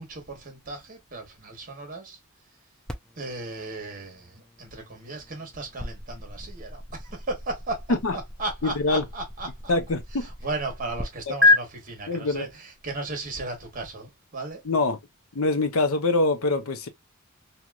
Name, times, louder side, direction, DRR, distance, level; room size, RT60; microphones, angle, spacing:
voice 1, 0.0-2.2 3.2-9.7 10.1-14.6, right 2 dB, 40° right, 1.2 m, -36 dB
sound 1, 2.9-11.0 11.4-11.6, left 3 dB, 5° left, 0.4 m, -29 dB
voice 2, 8.6-9.0 9.7-10.3 12.1-12.5 14.6-15.0 15.3-16.9, left 3 dB, 70° left, 0.6 m, -24 dB
2.9 x 2.7 x 2.2 m
head